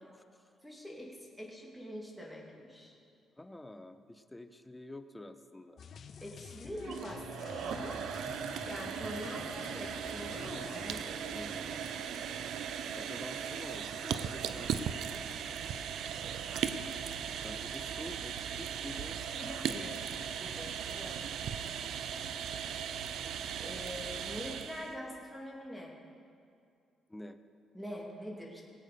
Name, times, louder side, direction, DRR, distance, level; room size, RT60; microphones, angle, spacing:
voice 1, 0.0-0.5 3.3-5.8 11.3-11.8 12.9-15.3 17.4-19.3 19.6-19.9 20.8-21.0 27.1-27.4, left 1 dB, 10° left, 10 dB, 0.7 m, -49 dB
voice 2, 0.6-3.0 6.2-8.0 8.7-11.4 19.3-21.3 23.6-26.0 27.7-28.6, equal, 5° right, -2 dB, 2.6 m, -44 dB
sound 1, 5.8-12.6 12.9-13.1, left 6 dB, 55° left, 0.5 m, -50 dB
sound 2, 6.7-25.0, right 8 dB, 75° right, 0.6 m, -38 dB
19.0 x 8.4 x 5.1 m, 2.3 s
cardioid pair, 90°, 0 cm